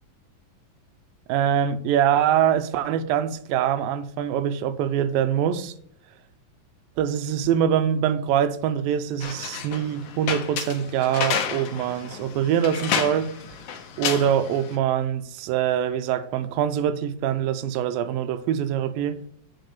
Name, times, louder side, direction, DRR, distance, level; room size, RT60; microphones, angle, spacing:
voice 1, 1.3-5.7 7.0-13.4 14.0-19.2, right 9 dB, 85° right, 2.4 m, -24 dB
sound 1, 9.2-14.8, left 7 dB, 80° left, 2.6 m, -31 dB
7.9 x 5.4 x 6.6 m
omnidirectional pair, 4.0 m